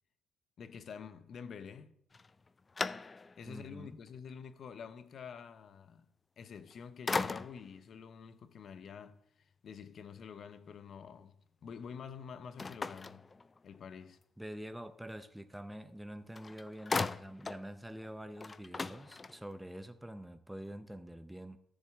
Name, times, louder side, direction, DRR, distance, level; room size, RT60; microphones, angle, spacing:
voice 1, 0.6-1.9 3.4-6.1 6.4-13.3 13.6-14.2, left 6 dB, 60° left, 0.7 m, -48 dB
sound 1, 2.1-3.5 4.1-4.2 6.4-6.7 7.1-7.8 12.6-13.9 16.0-16.1 16.4-17.7 18.0-18.1 18.4-19.6, left 4 dB, 30° left, 0.4 m, -38 dB
voice 2, 3.5-4.0 14.4-21.6, equal, 5° right, 0.7 m, -46 dB
13.5 x 7.2 x 3.6 m
cardioid pair, 90°, 0 cm